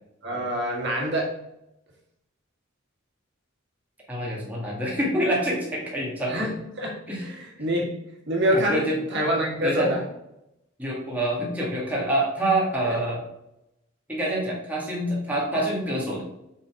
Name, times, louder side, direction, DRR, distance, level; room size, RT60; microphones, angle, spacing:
voice 1, 0.2-1.4 6.3-8.0 8.3-10.0 12.8-12.9, equal, 55° right, -2 dB, 1.7 m, -26 dB
voice 2, 4.1-6.5 7.1-7.3 8.5-9.0 9.6-9.9 10.8-13.2 14.1-16.2, right 1 dB, 10° right, -5 dB, 1.6 m, -26 dB
5.5 x 5.2 x 4.5 m, 0.85 s
head